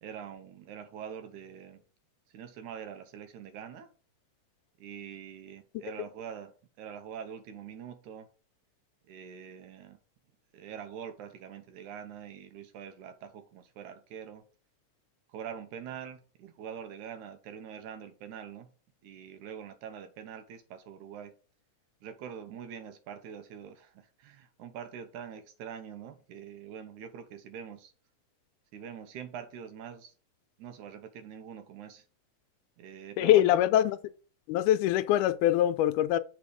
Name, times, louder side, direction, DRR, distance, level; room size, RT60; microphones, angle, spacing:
voice 1, 0.0-1.8 2.3-3.9 4.8-8.3 9.1-10.0 10.5-14.4 15.3-18.7 19.0-21.3 22.0-27.9 28.7-30.1 30.6-32.0 32.8-33.7, right 8 dB, 80° right, 2.2 m, -44 dB
voice 2, 33.2-34.0 34.5-36.2, left 12 dB, 85° left, 2.1 m, -23 dB
6.9 x 4.1 x 4.8 m
omnidirectional pair, 3.5 m